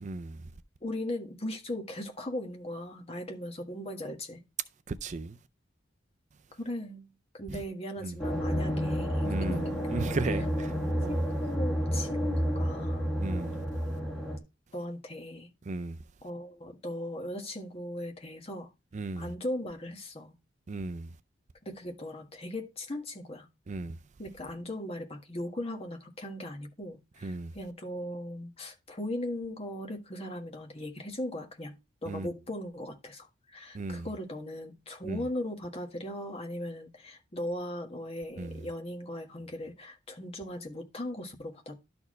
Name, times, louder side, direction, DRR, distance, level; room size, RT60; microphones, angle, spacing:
voice 1, 0.0-0.5 4.9-5.4 7.5-7.6 8.0-8.2 9.2-11.2 13.2-13.6 15.6-16.0 18.9-19.4 20.7-21.2 23.7-24.0 27.2-27.5 32.1-32.3 33.7-34.1 35.0-35.3 38.4-38.6, right 3 dB, 40° right, 0.4 m, -36 dB
voice 2, 0.8-4.4 6.6-9.7 11.1-13.1 14.7-15.5 16.2-18.7 19.2-20.3 21.6-23.5 24.2-31.8 32.0-41.8, left 1 dB, 30° left, 1.5 m, -38 dB
sound 1, 8.2-14.4, equal, 5° left, 1.7 m, -30 dB
12.0 x 4.4 x 3.1 m
head